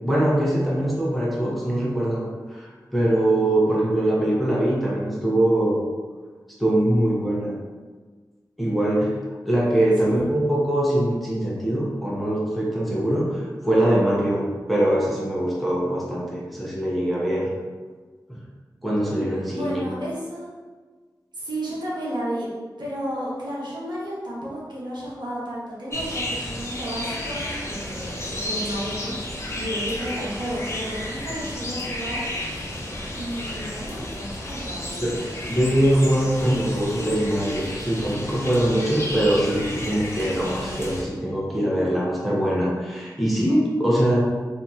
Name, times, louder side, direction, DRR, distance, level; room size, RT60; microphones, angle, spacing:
voice 1, 0.0-5.8 6.6-7.5 8.6-9.1 9.4-17.5 18.8-19.8 35.0-35.1 35.5-44.2, right 1 dB, ahead, -5 dB, 0.9 m, -22 dB
voice 2, 19.5-20.5 21.3-22.5 22.8-32.2 33.1-35.2, equal, 70° right, -6 dB, 1.0 m, -32 dB
sound 1, 25.9-41.0, left 1 dB, 35° left, 0.7 m, -32 dB
2.9 x 2.8 x 3.6 m, 1.4 s
wide cardioid pair, 70°, 8 cm